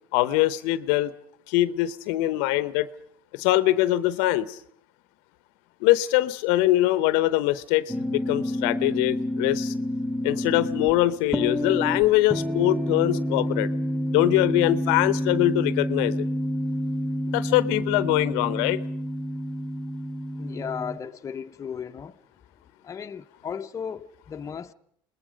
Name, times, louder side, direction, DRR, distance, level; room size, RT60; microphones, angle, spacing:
voice 1, 0.1-1.1 1.5-2.9 3.3-4.6 5.8-9.7 10.2-13.7 14.1-16.2 17.3-18.8, left 15 dB, 75° left, 0.9 m, -23 dB
sound 1, 7.9-21.0, equal, ahead, 1.0 m, -29 dB
voice 2, 20.4-22.2 22.8-24.7, left 7 dB, 30° left, 0.9 m, -35 dB
28.0 x 20.0 x 5.2 m
supercardioid pair, 95°, 11 cm